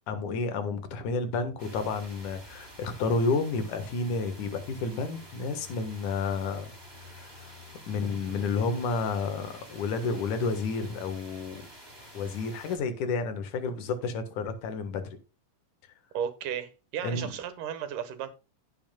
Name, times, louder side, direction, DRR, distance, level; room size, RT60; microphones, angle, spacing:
voice 1, 0.1-6.7 7.1-7.6 7.9-11.7 12.1-15.2 17.0-17.3, left 4 dB, 75° left, 3.0 m, -31 dB
sound 1, 1.6-12.8, equal, 5° right, 3.3 m, -49 dB
voice 2, 16.1-18.3, right 9 dB, 90° right, 2.9 m, -34 dB
16.0 x 7.2 x 2.3 m
omnidirectional pair, 3.6 m